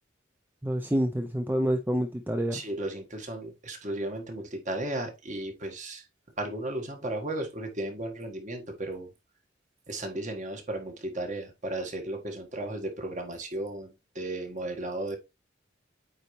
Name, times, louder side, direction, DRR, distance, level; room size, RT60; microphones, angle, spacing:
voice 1, 0.6-2.6, equal, 10° right, 0.5 m, -27 dB
voice 2, 2.5-6.0 6.4-9.1 9.9-15.2, right 1 dB, 40° right, 1.7 m, -35 dB
8.7 x 4.1 x 3.2 m
head